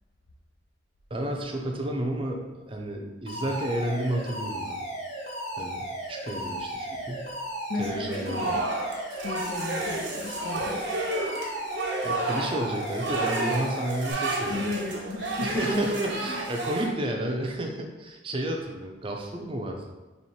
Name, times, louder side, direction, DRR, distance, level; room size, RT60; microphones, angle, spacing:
voice 1, 1.1-4.8 5.6-7.3 7.8-8.5 12.0-14.7 15.4-19.9, right 1 dB, 30° right, 1 dB, 0.5 m, -31 dB
Alarm, 3.3-14.1, right 1 dB, 40° left, 1.4 m, -35 dB
voice 2, 7.7-8.7 9.2-10.8 14.5-15.8, left 3 dB, 60° left, -3 dB, 0.5 m, -34 dB
sound 1, 8.1-16.9, right 2 dB, 80° right, 0.8 m, -31 dB
3.1 x 3.0 x 4.3 m, 1.2 s
head